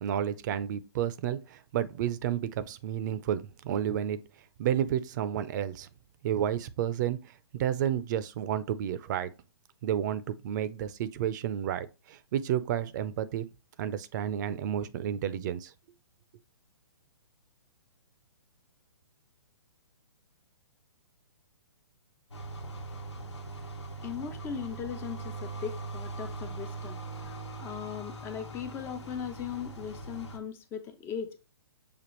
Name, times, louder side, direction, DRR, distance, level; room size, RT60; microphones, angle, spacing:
voice 1, 0.0-4.2 4.6-5.9 6.2-7.2 7.5-9.3 9.8-13.5 13.8-15.7, right 10 dB, 45° right, 0.5 m, -31 dB
sound 1, 22.3-30.4, right 3 dB, 90° left, 1.2 m, -41 dB
voice 2, 24.0-27.0 27.2-31.5, left 8 dB, 15° left, 0.4 m, -39 dB
6.9 x 2.4 x 3.0 m
hypercardioid pair, 135°, 14 cm